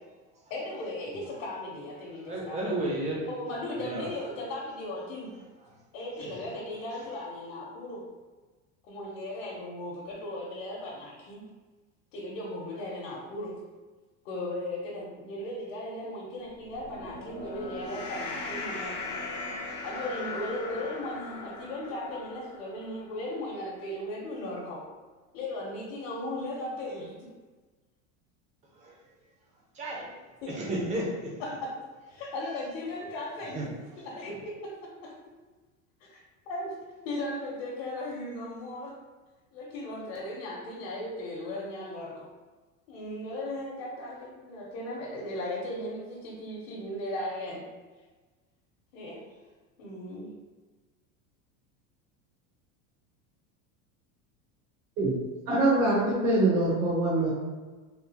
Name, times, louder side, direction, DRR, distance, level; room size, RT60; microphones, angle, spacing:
voice 1, 0.5-2.7 3.2-5.3 5.9-8.0 8.8-11.5 12.1-13.5 14.2-18.9 19.8-24.8 25.3-27.1 30.4-30.5 31.4-31.7 32.1-33.7 34.0-35.1 36.0-36.2 36.5-36.7 37.0-38.9 39.5-42.3 42.9-47.6 48.9-49.2 49.8-50.3, left 1 dB, 65° left, -5 dB, 1.0 m, -37 dB
voice 2, 2.0-3.3 3.6-4.1 5.6-5.8 6.2-7.2 28.7-29.0 29.7-31.4 33.5-34.4, right 1 dB, 20° right, -3 dB, 0.5 m, -35 dB
sound 1, 16.6-23.2, left 3 dB, 30° left, 0.4 m, -39 dB
voice 3, 55.5-57.3, right 2 dB, 65° right, -7 dB, 1.1 m, -24 dB
3.6 x 2.4 x 2.8 m, 1.3 s
cardioid pair, 165°, 38 cm